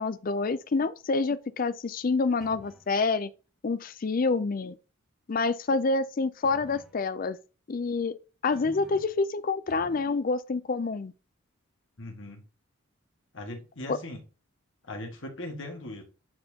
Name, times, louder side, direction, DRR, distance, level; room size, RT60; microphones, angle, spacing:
voice 1, 0.0-3.3 3.6-4.8 5.3-7.4 7.7-8.1 8.4-11.1 13.9-14.0, left 3 dB, 40° left, 0.4 m, -27 dB
sound 1, 2.4-2.9 6.4-7.0 8.5-9.2 9.7-10.2, equal, ahead, 1.0 m, -50 dB
voice 2, 12.0-12.4 13.3-14.2 14.8-16.0, left 1 dB, 60° left, 1.7 m, -39 dB
9.4 x 4.3 x 2.8 m
head